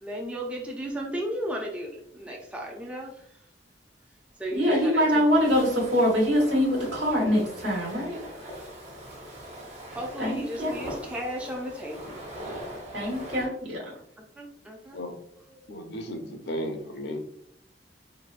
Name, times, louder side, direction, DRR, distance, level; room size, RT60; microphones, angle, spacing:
voice 1, 0.0-3.4 4.4-5.2 6.0-6.2 9.9-12.2 14.2-15.2 15.5-15.7, right 1 dB, 5° right, -1 dB, 0.4 m, -35 dB
sound 1, 4.5-13.5, equal, 40° right, 1.2 m, -41 dB
voice 2, 4.5-8.2 10.2-10.7 12.9-13.9, equal, 70° right, -3 dB, 1.3 m, -24 dB
voice 3, 15.7-17.2, equal, 65° left, 6 dB, 0.5 m, -34 dB
3.9 x 2.1 x 2.4 m, 0.70 s
head